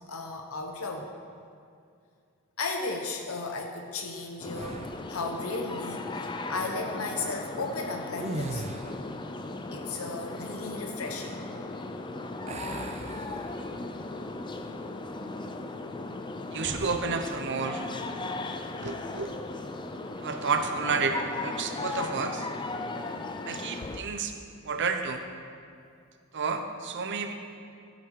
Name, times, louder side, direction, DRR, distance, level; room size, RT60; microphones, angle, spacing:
voice 1, 0.1-1.1 2.6-8.6 9.7-11.4 23.8-23.9 24.8-24.9, left 3 dB, 85° left, 3 dB, 1.0 m, -35 dB
sound 1, 4.4-24.0, left 2 dB, 20° left, 0.5 m, -37 dB
sound 2, 4.5-5.2 8.1-9.2 12.5-13.9 14.4-14.6 16.6-17.1, right 2 dB, 30° right, 0.5 m, -38 dB
voice 2, 16.5-17.8 18.8-19.3 20.2-22.5 23.5-24.3 24.6-25.2 26.3-27.3, right 4 dB, 55° right, 6 dB, 0.9 m, -30 dB
14.0 x 8.2 x 4.7 m, 2.4 s
head